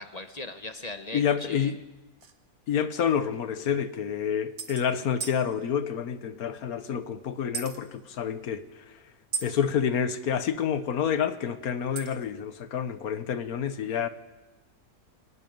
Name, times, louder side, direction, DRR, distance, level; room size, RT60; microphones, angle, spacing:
voice 1, 0.0-1.7, left 2 dB, 30° left, 7 dB, 1.3 m, -39 dB
voice 2, 1.1-1.8 2.7-8.6 9.4-14.1, left 8 dB, 85° left, 11 dB, 1.5 m, -28 dB
sound 1, 2.2-2.3 3.3-3.4 3.7-3.8 4.6-4.9 5.2-5.4 7.5-7.8 9.3-9.5 12.0-12.3, right 6 dB, 90° right, 1.8 m, -35 dB
23.5 x 12.5 x 9.4 m, 1.1 s
omnidirectional pair, 1.5 m